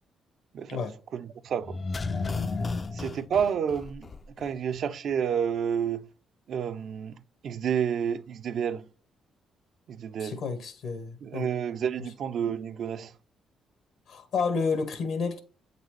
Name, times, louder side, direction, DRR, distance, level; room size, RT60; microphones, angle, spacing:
voice 1, 1.1-1.8 2.9-6.1 6.5-8.9 9.9-10.4 11.2-13.1, right 8 dB, 65° right, 0.4 m, -30 dB
sound 1, 1.6-4.5 4.8-4.9, left 4 dB, 35° left, 0.4 m, -33 dB
voice 2, 10.2-11.5 12.0-12.1 14.1-15.4, left 5 dB, 75° left, 1.1 m, -30 dB
8.1 x 4.0 x 3.1 m
cardioid pair, 90°, 0 cm